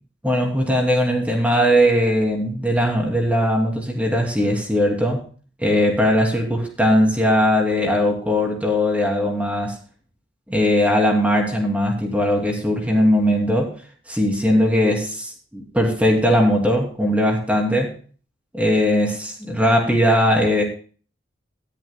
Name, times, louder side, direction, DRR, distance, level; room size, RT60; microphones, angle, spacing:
voice 1, 0.2-5.2 5.6-9.8 10.5-13.7 14.1-17.9 18.5-20.6, equal, 10° right, 1 dB, 2.7 m, -19 dB
18.5 x 11.0 x 2.2 m, 0.40 s
head